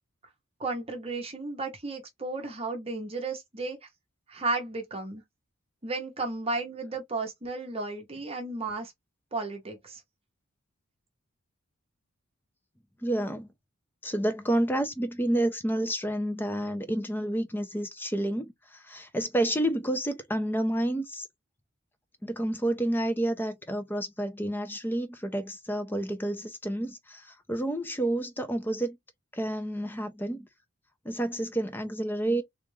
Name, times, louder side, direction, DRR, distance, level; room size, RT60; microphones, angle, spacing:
voice 1, 0.6-3.9 4.3-5.2 5.8-8.9 9.3-10.0, right 3 dB, 25° right, 0.9 m, -34 dB
voice 2, 13.0-13.5 14.0-21.3 22.2-29.0 29.3-30.5 31.0-32.4, right 1 dB, 10° left, 0.6 m, -29 dB
3.6 x 2.5 x 3.1 m
head